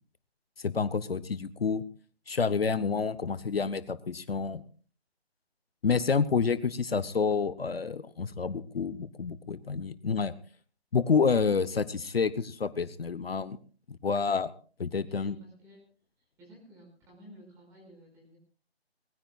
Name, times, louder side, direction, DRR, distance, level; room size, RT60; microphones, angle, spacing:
voice 1, 0.6-1.8 2.3-4.6 5.8-10.3 10.9-13.6 13.9-14.5 14.8-15.4, left 5 dB, 65° left, 15 dB, 0.9 m, -28 dB
voice 2, 15.0-15.8 16.4-18.4, equal, 10° right, -1 dB, 5.5 m, -54 dB
21.0 x 19.0 x 2.4 m, 0.41 s
figure-of-eight pair, 160°, 32 cm